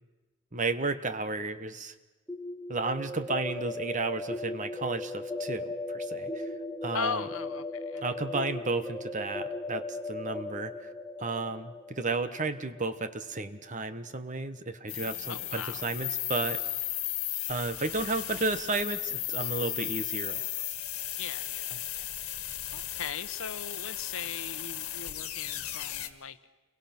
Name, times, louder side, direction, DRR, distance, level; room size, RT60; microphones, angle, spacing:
voice 1, 0.5-1.9 2.7-6.5 6.8-7.2 8.0-10.7 11.2-16.6 17.5-20.5, right 3 dB, 35° right, 11 dB, 1.2 m, -33 dB
sound 1, 2.3-14.0, left 2 dB, 5° left, 1.1 m, -38 dB
voice 2, 6.9-8.0 15.3-15.8 21.2-26.4, left 6 dB, 65° left, 12 dB, 1.0 m, -39 dB
sound 2, 14.9-26.1, left 13 dB, 85° left, 1.7 m, -35 dB
29.5 x 23.0 x 6.0 m, 1.2 s
head